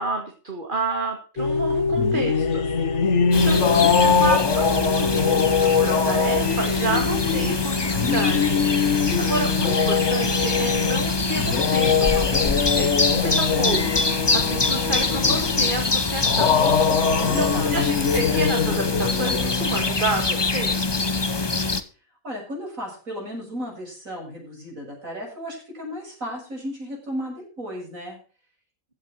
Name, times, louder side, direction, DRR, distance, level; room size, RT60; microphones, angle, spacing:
voice 1, 0.0-2.9 3.4-17.0 17.4-20.9, right 3 dB, 40° right, 2 dB, 2.3 m, -30 dB
sound 1, 1.4-19.9, left 6 dB, 60° left, 1.5 m, -23 dB
sound 2, 3.3-21.8, left 3 dB, 20° left, 0.8 m, -24 dB
voice 2, 3.4-4.0 17.1-17.8 22.2-28.2, equal, 80° right, -1 dB, 7.6 m, -35 dB
15.0 x 8.8 x 4.5 m, 0.38 s
omnidirectional pair, 1.4 m